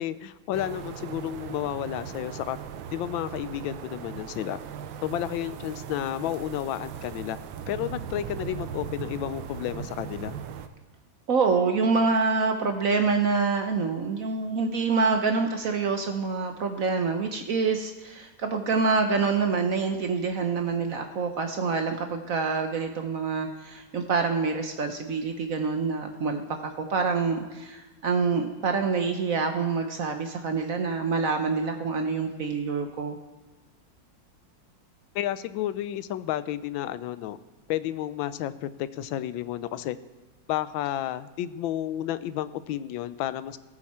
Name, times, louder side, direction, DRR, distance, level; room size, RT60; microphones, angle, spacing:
voice 1, 0.0-2.6 2.9-4.6 5.0-7.4 7.7-10.4 35.1-37.4 37.7-40.0 40.5-43.6, left 12 dB, 80° left, 14 dB, 1.3 m, -31 dB
sound 1, 0.5-10.7, right 8 dB, 80° right, 1.5 m, -38 dB
voice 2, 11.3-33.2, right 4 dB, 60° right, 5 dB, 1.0 m, -26 dB
18.5 x 7.2 x 4.3 m, 1.2 s
omnidirectional pair, 2.1 m